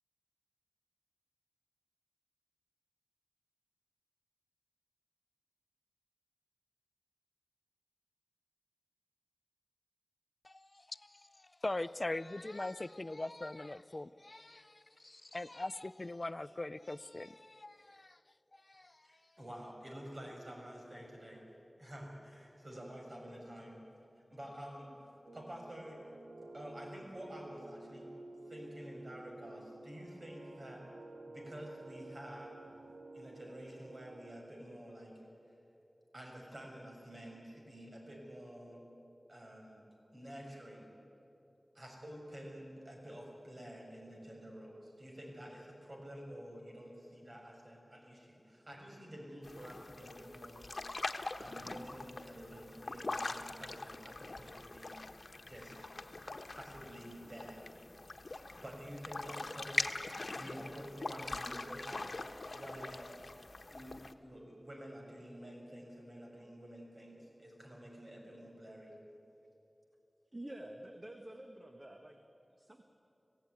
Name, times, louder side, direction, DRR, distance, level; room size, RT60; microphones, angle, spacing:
voice 1, 10.4-18.2 18.6-19.0, left 2 dB, 40° left, 16 dB, 0.5 m, -42 dB
voice 2, 19.0-21.4 21.8-23.8 24.3-26.0 26.5-28.0 28.5-30.8 31.3-32.5 33.1-35.1 36.1-38.8 39.3-39.8 40.1-40.9 41.7-50.6 51.4-55.1 55.4-55.7 56.5-57.6 58.6-59.9 60.3-62.0 62.5-63.1 63.7-64.0 64.2-68.9, equal, 50° right, -1 dB, 6.3 m, -49 dB
sound 1, 25.3-34.4, right 2 dB, 75° right, 1.1 m, -52 dB
sound 2, 49.4-64.1, left 2 dB, 65° left, 1.1 m, -43 dB
voice 3, 70.3-72.2 72.6-72.8, right 1 dB, 35° right, 4 dB, 1.5 m, -48 dB
26.0 x 16.0 x 9.3 m, 2.9 s
wide cardioid pair, 65°, 0 cm